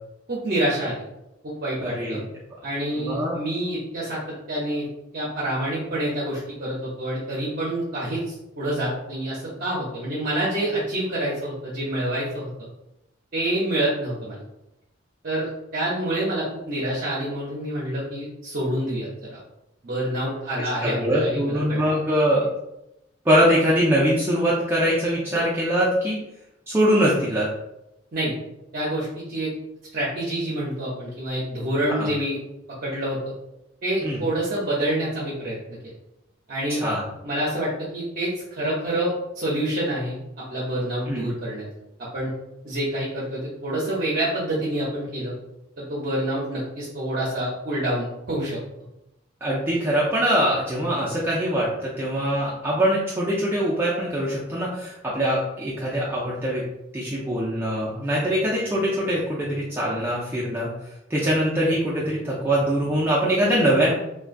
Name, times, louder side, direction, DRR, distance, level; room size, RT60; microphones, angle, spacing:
voice 1, 0.3-1.0 1.4-2.2 2.6-4.2 4.5-4.9 5.1-12.5 13.3-14.4 15.2-19.4 19.8-21.8 28.1-28.3 28.7-29.5 29.9-32.4 32.8-33.2 33.8-35.6 36.5-36.8 37.2-41.7 42.1-42.3 42.6-45.3 45.8-48.6, right 1 dB, 50° right, -6 dB, 0.6 m, -27 dB
voice 2, 1.8-2.2 2.9-3.4 20.6-22.5 23.2-26.2 26.7-27.5 32.0-32.1 34.0-34.2 36.8-37.0 41.1-41.3 49.4-56.6 56.9-60.7 61.1-63.9, equal, 10° right, -6 dB, 0.4 m, -23 dB
3.6 x 2.2 x 2.4 m, 0.90 s
head